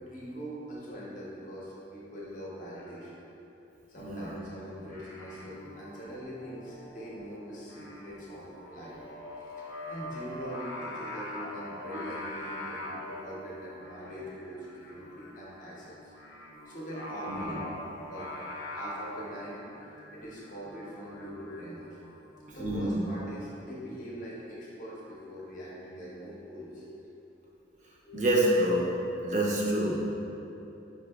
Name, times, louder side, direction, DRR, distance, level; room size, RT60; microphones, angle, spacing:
voice 1, 0.0-3.2 3.9-8.4 8.7-16.1 16.7-17.7 18.1-19.6 20.1-21.9 22.5-27.0 28.0-28.2, equal, 45° left, -6 dB, 0.7 m, -42 dB
voice 2, 4.0-4.4 17.3-17.6 22.6-23.0 28.1-28.9 29.2-30.1, right 1 dB, 40° right, -4 dB, 0.5 m, -27 dB
Singing, 4.8-23.3, left 1 dB, 80° left, 0.5 m, -43 dB
4.7 x 2.6 x 2.3 m, 3.0 s
head